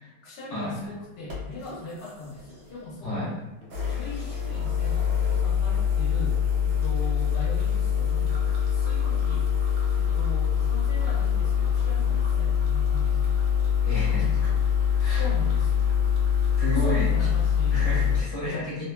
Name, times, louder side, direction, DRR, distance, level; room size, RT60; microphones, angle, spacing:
voice 1, 0.2-3.4 3.9-6.4 6.6-9.5 10.0-13.6 15.0-15.9 16.7-18.7, left 2 dB, 75° left, -4 dB, 1.3 m, -40 dB
sound 1, 0.7-0.8 1.3-2.9 3.6-18.2, left 8 dB, 65° right, 1.0 m, -24 dB
voice 2, 13.8-14.6 15.0-15.2 16.6-17.1 17.7-18.8, equal, 50° left, -9 dB, 1.3 m, -31 dB
3.2 x 2.1 x 2.2 m, 0.96 s
omnidirectional pair, 1.8 m